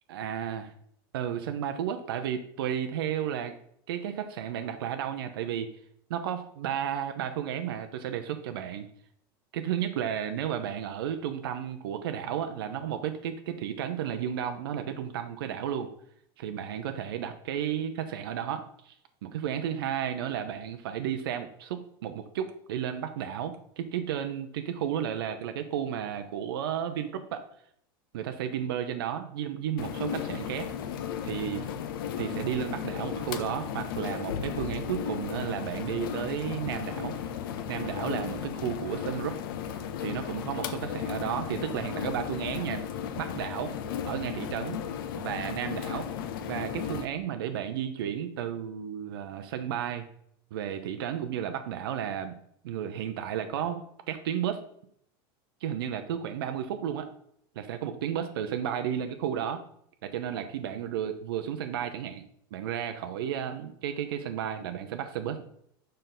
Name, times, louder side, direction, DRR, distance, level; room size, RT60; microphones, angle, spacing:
voice 1, 0.1-0.7 1.1-3.5 3.9-5.7 6.1-8.9 9.5-15.9 16.4-18.9 19.2-27.4 28.1-30.7 31.2-31.7 32.2-37.3 37.7-39.4 39.7-42.9 43.1-43.7 44.1-44.8 45.1-46.1 46.4-50.1 50.5-52.4 52.6-54.6 55.6-57.1 57.6-59.6 60.0-62.2 62.5-65.4, right 9 dB, 80° right, 7 dB, 0.7 m, -33 dB
sound 1, 29.8-47.1, left 8 dB, 70° left, 0.7 m, -35 dB
6.6 x 5.2 x 4.0 m, 0.68 s
supercardioid pair, 180°, 12 cm